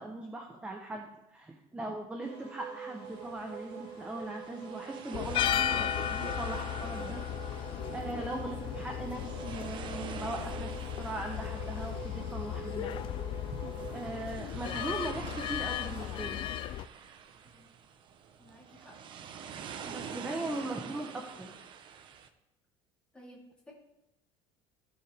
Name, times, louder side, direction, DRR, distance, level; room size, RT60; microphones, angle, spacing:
voice 1, 0.0-7.2 7.5-10.7 11.0-12.9 13.9-16.4 19.8-21.5, right 2 dB, 10° right, 2 dB, 0.9 m, -39 dB
sound 1, 2.2-14.4, right 6 dB, 70° right, 3.1 m, -46 dB
sound 2, 3.0-22.3, right 7 dB, 40° right, 0.8 m, -47 dB
sound 3, 5.1-16.9, left 11 dB, 40° left, 0.4 m, -35 dB
voice 2, 18.4-19.0 23.1-23.7, equal, 5° left, -5 dB, 3.4 m, -55 dB
17.0 x 5.9 x 3.5 m, 0.91 s
cardioid pair, 140°, 13 cm